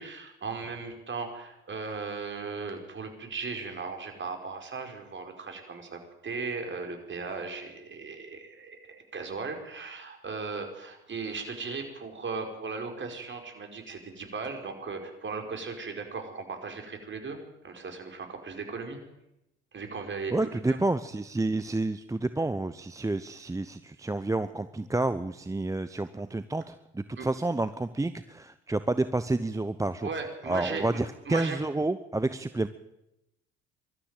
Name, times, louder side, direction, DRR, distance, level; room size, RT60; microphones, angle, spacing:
voice 1, 0.0-17.4 17.6-19.0 19.7-20.8 27.2-27.3 30.0-31.6, right 4 dB, 35° right, 4 dB, 5.1 m, -37 dB
voice 2, 20.3-30.1 30.5-32.7, right 2 dB, 10° right, 12 dB, 0.9 m, -29 dB
21.5 x 13.0 x 9.1 m, 0.89 s
hypercardioid pair, 65°, 33 cm